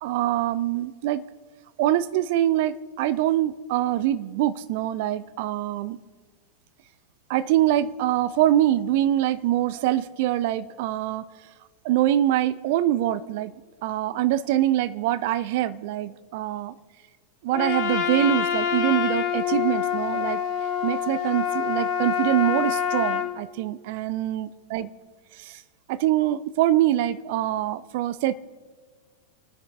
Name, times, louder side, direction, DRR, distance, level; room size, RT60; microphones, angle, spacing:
voice 1, 0.0-1.3 1.8-6.0 7.3-11.2 11.8-13.5 13.8-16.7 17.4-20.4 20.8-24.9 25.4-25.6 25.9-28.3, right 13 dB, 50° right, 14 dB, 0.6 m, -24 dB
Trumpet, 17.5-23.3, left 8 dB, 35° left, 2.5 m, -26 dB
28.5 x 9.7 x 3.3 m, 1.5 s
figure-of-eight pair, 90°, 0 cm